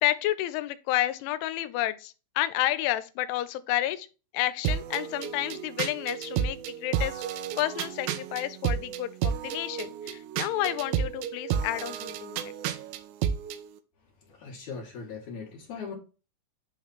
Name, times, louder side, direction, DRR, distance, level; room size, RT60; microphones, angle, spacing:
voice 1, 0.0-4.1 4.3-7.2 7.6-12.5, left 14 dB, 85° left, 3.0 m, -30 dB
sound 1, 4.6-13.6, right 8 dB, 80° right, 2.6 m, -31 dB
voice 2, 14.2-15.9, left 5 dB, 65° left, 2.0 m, -39 dB
9.4 x 3.2 x 4.1 m
omnidirectional pair, 5.4 m